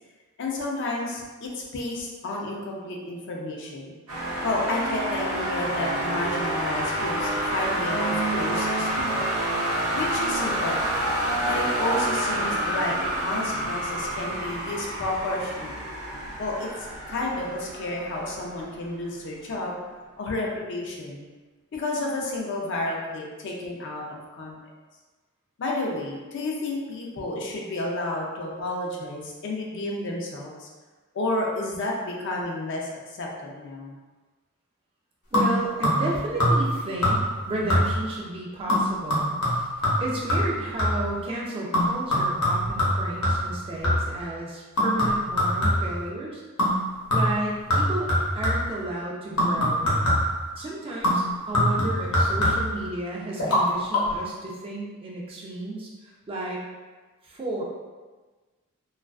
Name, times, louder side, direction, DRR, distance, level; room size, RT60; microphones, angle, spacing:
voice 1, 0.4-3.9 4.4-9.2 9.9-11.0 11.4-15.8 16.4-19.7 20.2-21.2 21.7-24.6 25.6-30.7 31.1-33.9, left 2 dB, 55° left, -1 dB, 0.4 m, -31 dB
sound 1, 4.1-18.9, right 1 dB, 80° right, 0.7 m, -28 dB
sound 2, 35.3-36.1 36.4-36.8 37.0-37.4 37.7-38.1 38.7-41.1 41.7-44.2 44.8-46.0 46.6-46.8 47.1-48.8 49.4-50.4 51.0-52.8 53.4-53.6 53.9-54.0, left 1 dB, 85° left, 0.8 m, -23 dB
voice 2, 35.3-39.7 40.0-46.4 47.1-48.1 48.3-49.9 50.6-56.6 57.2-57.6, right 2 dB, 25° right, -3 dB, 0.3 m, -33 dB
2.3 x 2.3 x 2.3 m, 1.3 s
head